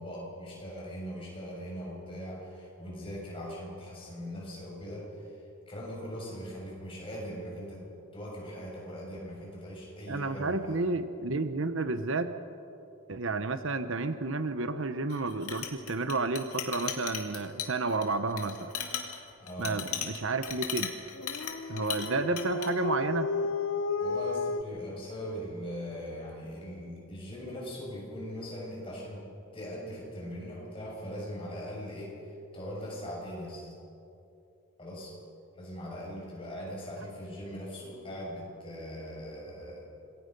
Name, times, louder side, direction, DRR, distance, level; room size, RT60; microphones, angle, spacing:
voice 1, 0.0-5.1 5.7-7.9 8.1-10.8 19.4-19.8 21.6-21.8 24.0-32.2 32.5-33.7 34.8-35.1 35.6-39.8, equal, 25° left, -3 dB, 6.6 m, -40 dB
voice 2, 10.1-12.3 13.1-18.7 19.6-20.9 21.7-23.3, right 3 dB, 65° right, 10 dB, 0.9 m, -31 dB
Chink clink, 15.1-22.1 22.4-22.7, left 8 dB, 90° left, 2.4 m, -37 dB
Dog, 21.2-24.6, left 4 dB, 60° left, 0.6 m, -32 dB
27.0 x 21.0 x 5.3 m, 2.7 s
head